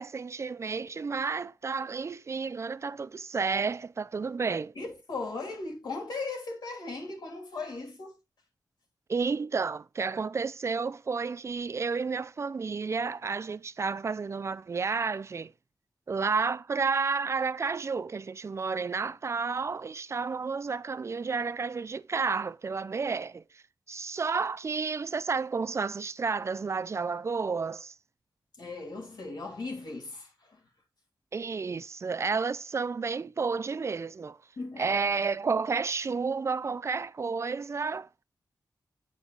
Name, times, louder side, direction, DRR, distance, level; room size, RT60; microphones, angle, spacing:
voice 1, 0.0-4.7 9.1-15.5 16.1-23.4 23.9-27.9 31.3-34.4 34.8-38.2, right 5 dB, 40° right, 0.4 m, -31 dB
voice 2, 4.7-8.2 28.6-30.6 34.6-35.0, left 3 dB, 75° left, 3.0 m, -38 dB
8.3 x 4.4 x 3.9 m
wide cardioid pair, 110°, 7 cm